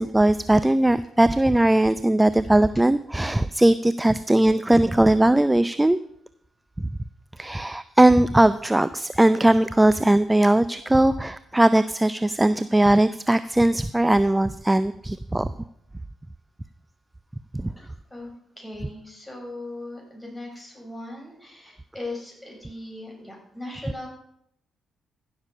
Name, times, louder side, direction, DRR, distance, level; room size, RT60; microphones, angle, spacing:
voice 1, 0.0-6.0 6.8-6.9 7.4-15.5 17.5-17.7, right 1 dB, 15° right, 15 dB, 0.5 m, -19 dB
voice 2, 17.8-24.1, left 2 dB, 5° left, -1 dB, 6.3 m, -39 dB
15.5 x 6.8 x 5.6 m, 0.74 s
hypercardioid pair, 40°, 0 cm